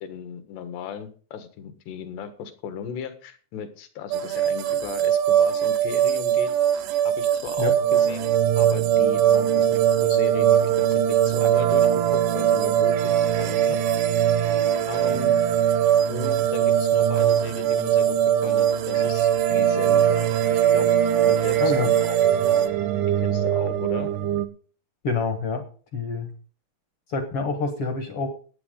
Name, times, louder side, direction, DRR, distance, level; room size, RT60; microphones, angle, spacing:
voice 1, 0.0-6.5 7.1-10.6 10.9-11.9 12.1-13.8 14.9-15.4 16.1-18.2 18.4-20.9 21.2-22.3 23.2-24.1, left 7 dB, 85° left, 8 dB, 3.7 m, -36 dB
sound 1, 4.1-22.7, right 10 dB, 90° right, 3.2 m, -22 dB
sound 2, 7.6-24.5, right 11 dB, 75° right, 1.8 m, -26 dB
voice 2, 25.0-25.6 25.9-26.3 27.1-28.3, left 4 dB, 65° left, 6 dB, 1.4 m, -26 dB
18.0 x 8.5 x 3.8 m, 0.39 s
omnidirectional pair, 4.7 m